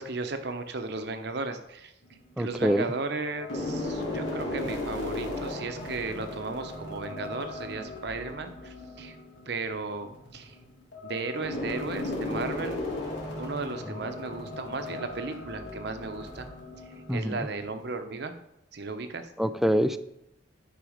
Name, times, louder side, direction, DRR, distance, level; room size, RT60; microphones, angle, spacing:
voice 1, 0.0-1.9 2.4-9.2 9.5-10.6 11.0-12.8 13.4-16.5 16.8-18.4 18.7-19.3, right 3 dB, 65° right, 8 dB, 0.9 m, -35 dB
sound 1, 2.0-2.9 3.4-17.9, left 2 dB, 80° left, 2.1 m, -36 dB
voice 2, 2.4-2.9 17.1-17.4 19.4-20.0, equal, ahead, 12 dB, 0.3 m, -25 dB
10.5 x 4.9 x 5.0 m, 0.82 s
head